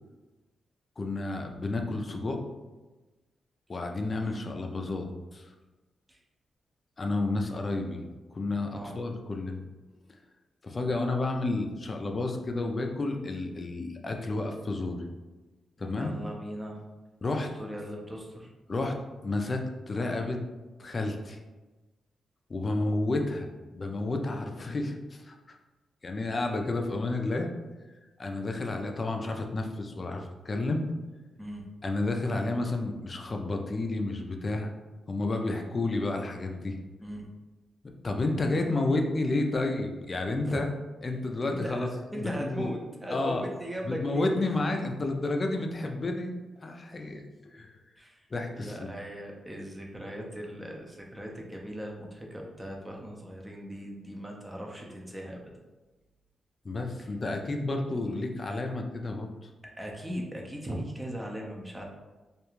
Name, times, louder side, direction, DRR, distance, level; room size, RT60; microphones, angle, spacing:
voice 1, 1.0-2.4 3.7-5.5 7.0-8.1 8.3-9.6 10.6-15.0 15.8-16.1 17.2-17.6 18.7-19.0 19.2-20.4 20.8-21.4 22.5-25.6 26.0-27.5 28.2-30.8 31.8-34.7 35.1-36.8 38.0-40.7 41.0-41.9 42.2-42.7 43.1-43.5 43.8-46.3 46.6-47.8 48.3-48.9 56.6-59.5, left 2 dB, 40° left, 3 dB, 0.4 m, -31 dB
voice 2, 15.8-16.8 17.3-18.5 31.4-31.6 37.0-37.2 40.4-40.6 41.5-44.4 48.0-48.3 48.5-55.4 59.8-61.9, equal, 15° right, -1 dB, 0.5 m, -38 dB
2.4 x 2.2 x 3.0 m, 1.2 s
cardioid pair, 75°, 0 cm